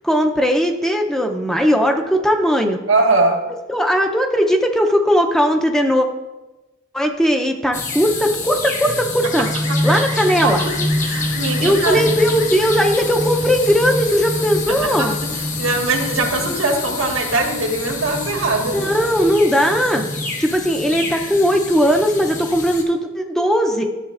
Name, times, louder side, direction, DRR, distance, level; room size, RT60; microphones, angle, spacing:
voice 1, 0.0-2.8 3.7-6.1 6.9-9.5 9.8-10.6 11.6-15.2 18.7-20.0 20.4-23.8, equal, ahead, 3 dB, 0.5 m, -18 dB
voice 2, 2.9-3.4 9.7-10.0 10.4-12.0 14.7-15.1 15.6-18.8, right 2 dB, 90° right, 2 dB, 1.5 m, -21 dB
sound 1, 7.7-22.8, left 4 dB, 40° left, 1.2 m, -28 dB
sound 2, 8.8-16.6, equal, 90° left, 1.6 m, -26 dB
sound 3, 10.5-19.4, left 1 dB, 60° left, 2.2 m, -38 dB
13.0 x 7.3 x 2.4 m, 1.1 s
head